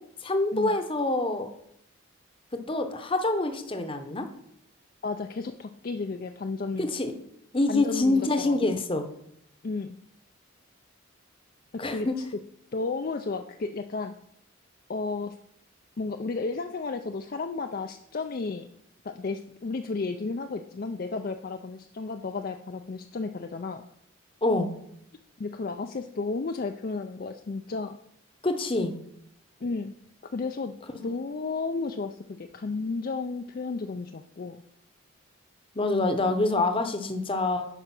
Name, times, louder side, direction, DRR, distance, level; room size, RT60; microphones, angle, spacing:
voice 1, 0.2-1.5 2.7-4.3 6.8-7.1 7.5-9.1 11.8-12.1 24.4-24.7 28.4-29.0 30.9-31.1 35.7-37.7, left 2 dB, 25° left, 8 dB, 0.8 m, -26 dB
voice 2, 5.0-6.9 7.7-8.6 9.6-10.0 11.7-12.4 12.7-14.1 14.9-15.4 16.0-18.7 19.0-23.8 25.4-28.0 29.6-29.9 30.3-30.7 31.0-34.6, left 3 dB, 45° left, 6 dB, 0.4 m, -33 dB
10.0 x 5.0 x 5.9 m, 0.74 s
head